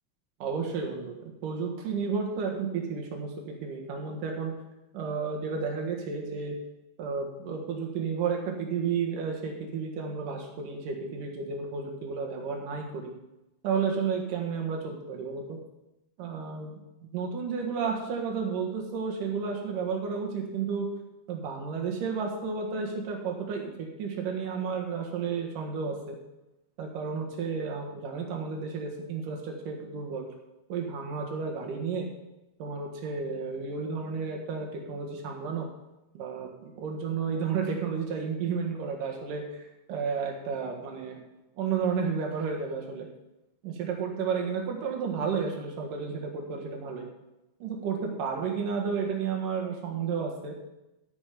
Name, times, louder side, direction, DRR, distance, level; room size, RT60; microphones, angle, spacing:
voice 1, 0.4-4.5 4.9-6.6 7.0-13.1 13.6-15.6 16.2-16.8 17.1-20.9 21.3-26.2 26.8-30.2 30.7-32.1 32.6-35.7 36.1-39.5 39.9-41.2 41.6-43.1 43.6-47.1 47.6-50.6, right 5 dB, 80° right, 1 dB, 3.2 m, -32 dB
13.5 x 6.3 x 5.2 m, 0.96 s
omnidirectional pair, 3.7 m